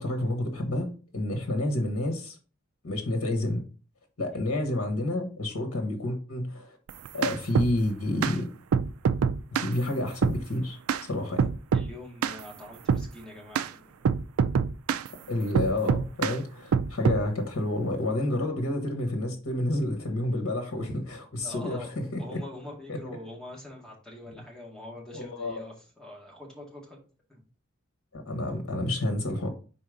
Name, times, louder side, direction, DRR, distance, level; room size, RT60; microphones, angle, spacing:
voice 1, 0.0-2.4 2.8-3.6 4.2-6.8 7.1-8.5 9.5-11.5 15.3-22.4 22.9-23.0 25.1-25.6 28.1-29.5, left 1 dB, 80° left, 1.2 m, -29 dB
sound 1, 6.9-7.7 8.2-8.4 8.7-9.7 10.2-10.4 10.9-11.0 11.4-11.9 12.2-12.4 12.9-13.1 13.5-13.7 14.0-15.1 15.5-16.4 16.7-17.2, right 6 dB, 85° right, 0.4 m, -25 dB
voice 2, 11.7-14.2 21.4-27.0 27.3-27.4, left 1 dB, 5° left, 1.9 m, -44 dB
4.6 x 4.2 x 5.0 m
head